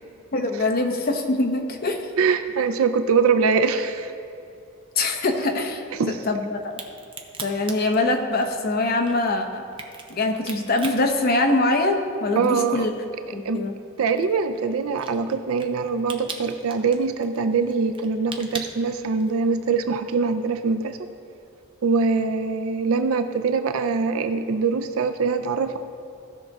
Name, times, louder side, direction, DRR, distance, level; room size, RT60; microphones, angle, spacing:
voice 1, 0.3-2.1 5.0-5.8 6.3-6.8 7.4-9.6 10.1-12.9 13.3-13.7, left 2 dB, 45° left, 3 dB, 0.8 m, -23 dB
voice 2, 2.2-4.1 6.0-6.2 12.4-12.9 13.4-13.6 14.0-21.0 21.8-25.8, right 5 dB, 80° right, 8 dB, 0.5 m, -23 dB
Crack, 6.6-12.1 12.5-19.5, right 4 dB, 25° right, 0.7 m, -40 dB
15.5 x 5.9 x 3.6 m, 2.6 s
head